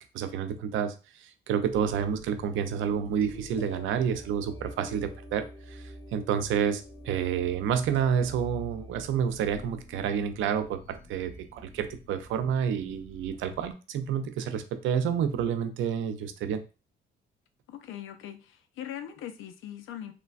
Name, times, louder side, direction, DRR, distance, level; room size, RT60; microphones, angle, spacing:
voice 1, 0.1-16.6, right 8 dB, 80° right, 9 dB, 0.5 m, -29 dB
sound 1, 1.7-13.7, equal, 10° left, 0.9 m, -47 dB
voice 2, 17.7-20.1, left 10 dB, 85° left, 8 dB, 0.5 m, -41 dB
3.2 x 2.2 x 2.4 m, 0.31 s
cardioid pair, 90°, 20 cm